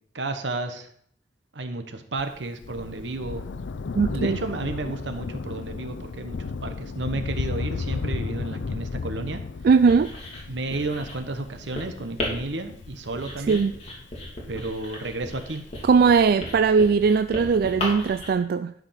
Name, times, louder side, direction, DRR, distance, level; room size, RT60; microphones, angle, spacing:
voice 1, 0.1-0.9 1.5-3.5 4.0-9.4 10.5-13.6 14.5-15.6, right 2 dB, 80° right, 7 dB, 1.1 m, -32 dB
Thunder, 2.2-15.0 15.9-16.0, left 4 dB, 85° left, 0.5 m, -34 dB
voice 2, 3.9-4.4 9.6-10.1 13.5-13.7 15.8-18.7, right 5 dB, 55° right, 11 dB, 0.3 m, -19 dB
Writing, 9.7-18.3, left 1 dB, 35° left, 2.9 m, -36 dB
12.0 x 5.0 x 5.8 m, 0.66 s
head